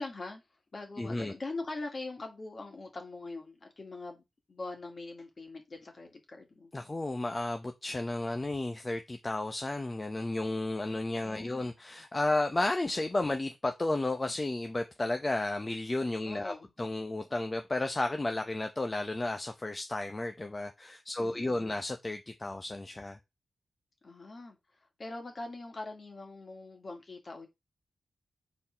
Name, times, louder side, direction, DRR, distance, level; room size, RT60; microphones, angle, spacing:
voice 1, 0.0-4.2 4.5-6.7 11.2-11.7 16.2-16.7 21.2-21.7 24.0-27.5, left 2 dB, 50° left, 2.2 m, -42 dB
voice 2, 1.0-1.3 6.7-23.2, left 2 dB, 30° left, 0.8 m, -33 dB
5.5 x 4.3 x 4.5 m
supercardioid pair, 45°, 0 cm